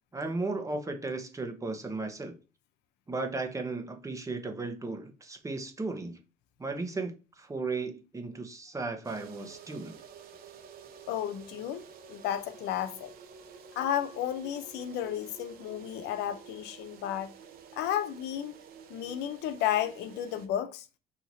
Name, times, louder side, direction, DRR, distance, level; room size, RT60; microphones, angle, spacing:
voice 1, 0.1-2.4 3.1-6.2 6.6-10.0, right 3 dB, 20° right, 0.9 m, -35 dB
sound 1, 9.0-20.5, right 7 dB, 60° right, 0.8 m, -50 dB
voice 2, 11.1-11.8 12.1-13.1 13.8-17.3 17.7-18.5 18.9-20.9, left 11 dB, 85° left, 0.6 m, -32 dB
4.5 x 2.9 x 4.0 m
cardioid pair, 110°, 17 cm